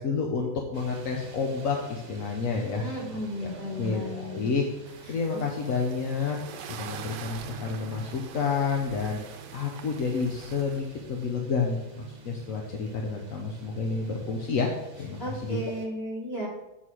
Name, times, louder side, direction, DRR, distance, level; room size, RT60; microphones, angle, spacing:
voice 1, 0.0-2.8 3.1-3.2 3.8-4.6 5.1-6.4 6.7-14.7 15.0-15.6, left 5 dB, 55° left, 0 dB, 1.0 m, -30 dB
sound 1, 0.7-15.9, right 3 dB, 45° right, 1.2 m, -47 dB
voice 2, 2.8-4.5 5.3-5.4 15.2-16.5, equal, 30° left, -6 dB, 3.0 m, -34 dB
sound 2, 4.9-11.3, right 8 dB, 75° right, 1.2 m, -45 dB
7.7 x 4.2 x 6.1 m, 0.98 s
omnidirectional pair, 2.1 m